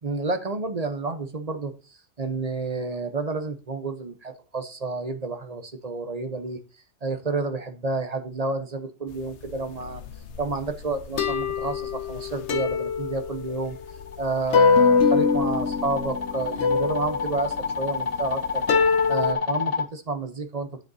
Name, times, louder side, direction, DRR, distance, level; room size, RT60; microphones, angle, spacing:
voice 1, 0.0-1.7 2.2-6.6 7.0-10.0 10.4-13.8 14.2-18.6 19.1-20.7, right 3 dB, 35° right, 9 dB, 0.9 m, -30 dB
sound 1, 9.3-19.3, left 5 dB, 65° left, 1.1 m, -24 dB
sound 2, 13.7-19.9, left 5 dB, 35° left, 0.9 m, -30 dB
9.1 x 7.7 x 2.7 m, 0.34 s
omnidirectional pair, 1.3 m